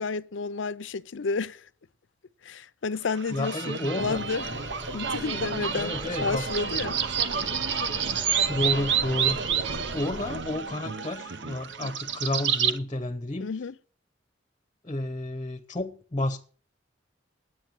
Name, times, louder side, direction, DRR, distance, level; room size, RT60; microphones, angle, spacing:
voice 1, 0.0-1.6 2.4-4.4 4.9-7.0 13.4-13.7, left 4 dB, 80° left, 0.6 m, -31 dB
sound 1, 3.1-12.8, right 7 dB, 70° right, 0.9 m, -29 dB
voice 2, 3.3-4.2 5.7-6.4 8.5-9.4 9.9-13.5 14.8-16.5, left 1 dB, 25° left, 0.7 m, -31 dB
sound 2, 4.0-10.4, equal, 20° right, 1.5 m, -41 dB
10.5 x 8.8 x 7.5 m
head